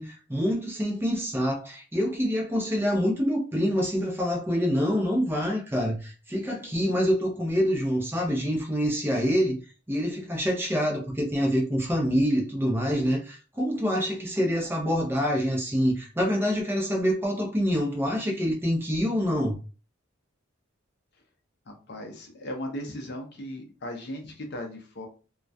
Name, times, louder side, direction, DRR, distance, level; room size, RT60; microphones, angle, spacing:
voice 1, 0.0-9.6 9.9-19.6, equal, 10° right, 0.5 m, -26 dB
voice 2, 21.7-25.1, left 1 dB, 55° left, 0.6 m, -37 dB
2.3 x 2.1 x 2.6 m
head